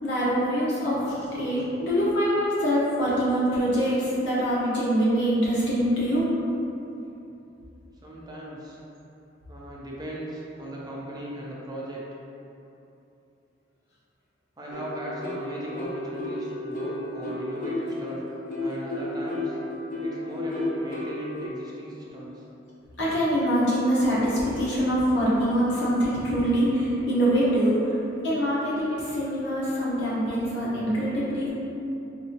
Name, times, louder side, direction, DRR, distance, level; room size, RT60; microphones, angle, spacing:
voice 1, 0.0-6.3 23.0-27.7 28.2-31.5, equal, 70° left, -9 dB, 1.0 m, -24 dB
voice 2, 8.0-8.8 9.5-12.0 14.6-18.2 18.6-19.6 20.0-22.4 29.5-29.6, equal, 20° right, -5 dB, 0.5 m, -37 dB
sound 1, 14.7-21.5, left 1 dB, 45° left, 0.7 m, -33 dB
4.1 x 2.7 x 2.9 m, 2.8 s
head